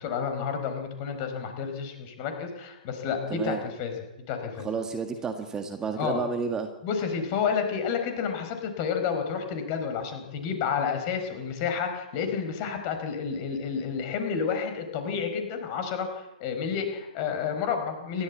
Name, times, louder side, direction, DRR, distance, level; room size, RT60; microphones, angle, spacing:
voice 1, 0.0-3.9 4.3-4.7 6.0-6.2 6.8-18.2, left 6 dB, 35° left, 6 dB, 4.7 m, -30 dB
voice 2, 3.3-3.6 4.6-6.7, right 5 dB, 15° right, 5 dB, 1.8 m, -31 dB
27.5 x 13.0 x 8.5 m, 0.98 s
figure-of-eight pair, 115°, 5 cm